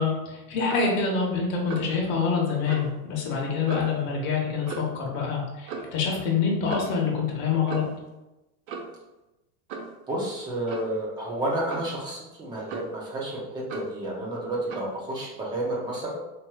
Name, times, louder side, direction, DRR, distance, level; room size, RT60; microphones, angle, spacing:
voice 1, 0.0-7.8, left 5 dB, 50° left, -2 dB, 1.1 m, -26 dB
Clock, 0.6-1.0 1.7-2.0 2.7-2.9 3.7-4.0 4.7-5.0 5.7-5.9 6.7-7.0 7.7-8.0 8.7-9.0 9.7-10.0 10.7-11.0 11.7-12.0 12.7-13.1 13.7-14.0 14.7-14.9, right 4 dB, 85° right, 0.8 m, -37 dB
voice 2, 10.1-16.2, right 1 dB, 10° right, -4 dB, 0.5 m, -31 dB
4.4 x 3.0 x 2.2 m, 1.0 s
supercardioid pair, 170°, 39 cm